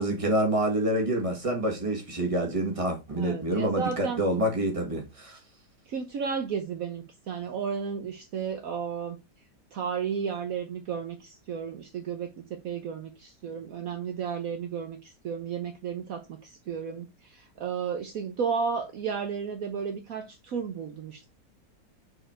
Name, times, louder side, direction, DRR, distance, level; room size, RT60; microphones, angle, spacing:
voice 1, 0.0-5.4, right 1 dB, 20° right, 1.8 m, -27 dB
voice 2, 3.1-4.2 5.9-9.2 9.7-21.3, right 6 dB, 60° right, 1.2 m, -33 dB
6.5 x 4.4 x 4.5 m
omnidirectional pair, 1.8 m